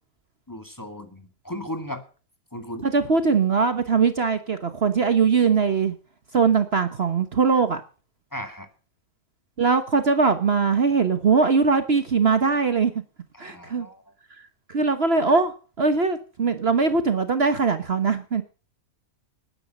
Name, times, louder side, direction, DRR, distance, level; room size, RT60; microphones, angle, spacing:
voice 1, 0.5-2.0 2.5-2.9 8.3-8.7 13.3-14.1, equal, 15° left, 7 dB, 2.1 m, -36 dB
voice 2, 2.8-5.9 6.3-7.8 9.6-12.9 13.4-13.9 14.7-15.5 15.8-18.4, right 5 dB, 50° right, 10 dB, 1.3 m, -21 dB
19.5 x 9.8 x 5.4 m, 0.38 s
omnidirectional pair, 1.5 m